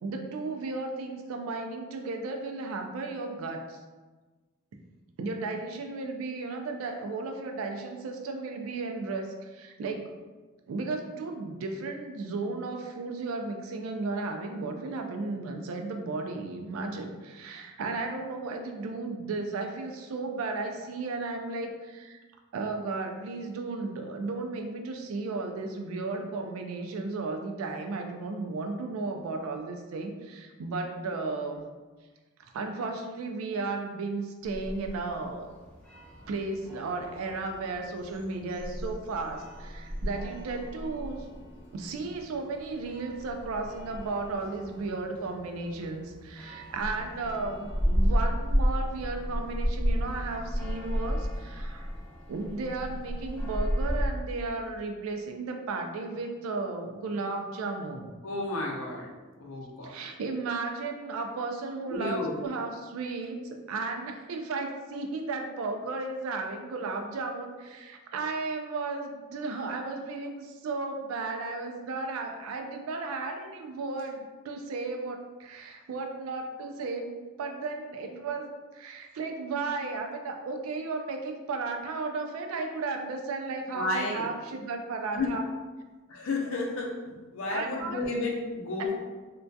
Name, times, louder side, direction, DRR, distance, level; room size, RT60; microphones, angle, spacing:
voice 1, 0.0-3.8 5.2-10.1 10.7-22.2 22.5-31.6 32.5-35.5 36.3-41.3 41.7-51.9 52.3-58.1 59.8-85.4 87.5-88.0 88.8-88.9, right 3 dB, 85° right, 4 dB, 0.3 m, -34 dB
sound 1, 34.4-54.1, equal, 5° left, 0.3 m, -33 dB
voice 2, 58.2-59.1 59.4-60.0 61.9-62.4 83.7-84.3 85.1-85.3 86.1-88.9, left 2 dB, 75° left, -1 dB, 0.5 m, -32 dB
2.2 x 2.2 x 2.5 m, 1.3 s
head